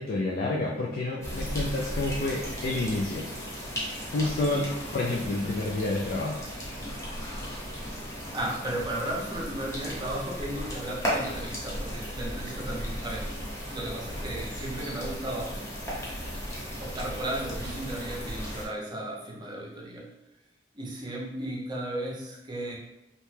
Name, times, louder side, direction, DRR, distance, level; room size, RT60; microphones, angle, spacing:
voice 1, 0.0-3.3 4.1-6.4, left 2 dB, 55° left, -1 dB, 0.3 m, -29 dB
sound 1, 1.2-18.7, equal, 15° left, 0.8 m, -36 dB
voice 2, 8.3-15.6 16.0-16.1 16.7-20.1 20.7-22.8, right 1 dB, 25° right, -3 dB, 0.6 m, -35 dB
2.8 x 2.2 x 3.2 m, 0.97 s
head